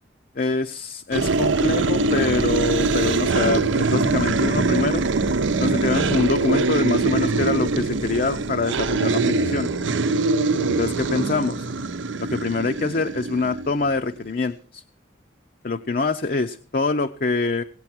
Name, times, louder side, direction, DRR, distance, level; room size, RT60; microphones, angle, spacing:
voice 1, 0.4-5.0 5.6-9.7 10.7-11.7 12.2-14.8 15.6-17.6, left 3 dB, 45° left, 6 dB, 0.6 m, -25 dB
sound 1, 1.1-14.0, right 3 dB, 80° right, 0.7 m, -23 dB
17.5 x 8.7 x 6.0 m, 0.43 s
head